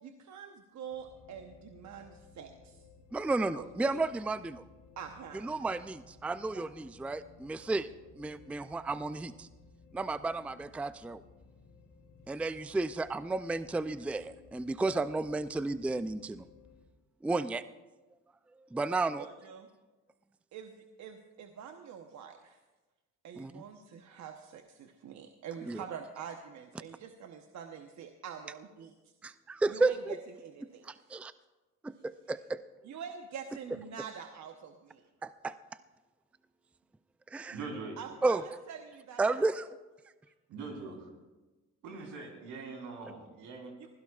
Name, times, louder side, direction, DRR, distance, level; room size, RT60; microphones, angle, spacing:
voice 1, 0.0-2.8 3.5-4.0 5.0-5.5 6.5-6.6 19.2-19.7 20.5-22.6 23.2-28.9 29.7-30.9 32.8-35.1 38.0-39.5, right 8 dB, 65° right, 4 dB, 1.0 m, -45 dB
sound 1, 0.9-16.9, left 4 dB, 90° left, 3.3 m, -58 dB
voice 2, 3.1-4.6 5.3-7.9 8.2-9.5 9.9-11.2 12.3-16.5 17.2-17.6 18.7-19.3 23.4-23.6 25.6-25.8 29.2-30.1 30.8-31.3 31.8-32.6 35.2-35.6 37.3-37.6 38.2-38.4 39.2-39.7, right 3 dB, 5° right, 13 dB, 0.4 m, -32 dB
voice 3, 37.5-38.0 40.5-41.1 41.8-43.9, right 4 dB, 85° right, 1 dB, 3.7 m, -42 dB
23.5 x 16.0 x 2.4 m, 1.2 s
cardioid pair, 90°, 30 cm